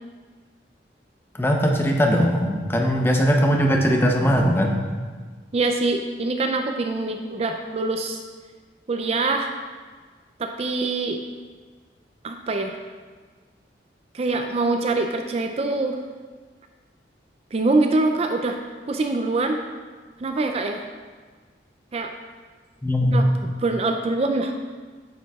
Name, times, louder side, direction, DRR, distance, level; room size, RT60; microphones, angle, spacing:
voice 1, 1.4-4.8 22.8-23.2, equal, 15° left, 1 dB, 0.7 m, -20 dB
voice 2, 5.5-8.2 8.9-9.5 10.4-11.2 12.2-12.8 14.1-16.0 17.5-18.6 18.9-19.6 20.2-20.9 21.9-22.1 23.1-24.6, right 3 dB, 35° right, 5 dB, 0.4 m, -24 dB
9.2 x 7.5 x 2.3 m, 1.5 s
head